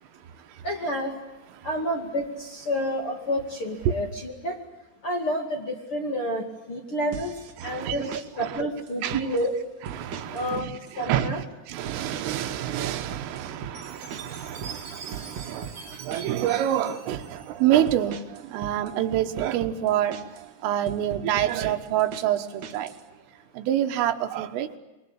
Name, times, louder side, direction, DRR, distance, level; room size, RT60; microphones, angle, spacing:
voice 1, 0.6-1.1 1.6-4.6 5.0-7.4 7.6-9.5 10.3-10.7 11.0-11.4, equal, 40° left, 2.2 m, -29 dB
sound 1, 7.1-7.5 7.9-8.3 8.9-9.5 9.8-10.5 10.7-11.3 11.9-12.5 12.7-16.5 16.9-17.3 17.9-20.5 20.9-23.0, right 7 dB, 60° right, 1.9 m, -39 dB
voice 2, 7.6-8.7 9.0-9.4 9.8-20.2 20.6-22.9 23.6-24.8, right 11 dB, 80° right, 3.9 m, -27 dB
Chime, 13.7-18.1, right 4 dB, 35° right, 6.8 m, -44 dB
27.0 x 24.0 x 8.8 m
omnidirectional pair, 5.9 m